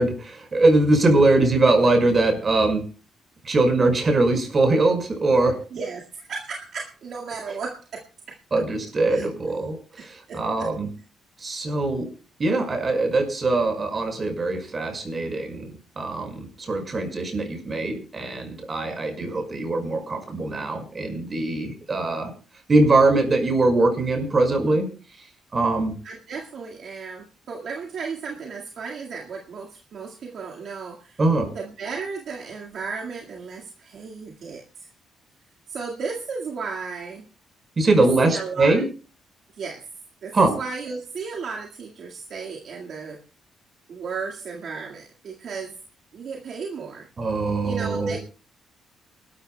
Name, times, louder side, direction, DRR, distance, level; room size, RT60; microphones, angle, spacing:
voice 1, 0.0-2.8 3.4-5.5 8.5-10.9 11.4-12.1 12.4-22.3 22.7-24.9 25.5-25.9 31.2-31.5 37.8-38.8 40.3-40.5 47.2-48.2, right 2 dB, 35° right, 5 dB, 5.4 m, -22 dB
voice 2, 5.7-8.4 9.1-9.3 10.0-10.7 26.0-31.2 31.5-34.9 35.7-37.3 37.9-38.8 39.6-39.8 40.2-43.2 43.9-45.7 46.1-47.1 47.6-48.2, right 5 dB, 60° right, -1 dB, 1.9 m, -34 dB
29.0 x 13.0 x 2.3 m, 0.36 s
cardioid pair, 90°, 0 cm